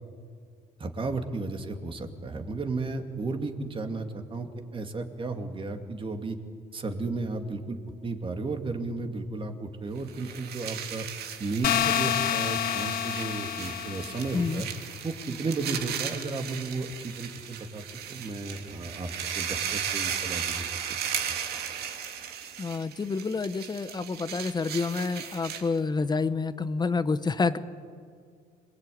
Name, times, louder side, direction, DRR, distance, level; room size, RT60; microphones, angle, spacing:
voice 1, 0.8-6.4 6.7-11.1 11.4-14.7 15.0-17.8 18.1-21.0 21.3-21.4, right 3 dB, 30° right, 5 dB, 2.5 m, -34 dB
sound 1, 10.0-25.8, right 8 dB, 70° right, 2.6 m, -36 dB
sound 2, 11.6-14.5, left 10 dB, 60° left, 1.1 m, -28 dB
voice 2, 22.6-27.6, left 4 dB, 25° left, 13 dB, 1.0 m, -28 dB
27.0 x 20.5 x 9.4 m, 2.1 s
cardioid pair, 110°, 17 cm